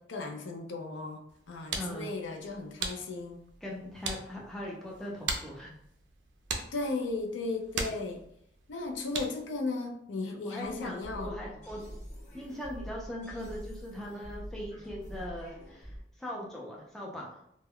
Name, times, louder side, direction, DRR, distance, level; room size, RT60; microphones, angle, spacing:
voice 1, 0.0-3.4 6.7-8.2 8.7-11.4, left 3 dB, 80° left, 3 dB, 0.4 m, -36 dB
sound 1, 1.3-9.6, right 4 dB, 65° right, 0.4 m, -40 dB
voice 2, 1.7-2.1 3.6-5.8 10.4-12.0 12.3-17.3, left 1 dB, ahead, -4 dB, 0.4 m, -40 dB
sound 2, 10.6-16.0, equal, 40° left, 0.8 m, -45 dB
2.2 x 2.1 x 3.5 m, 0.72 s
head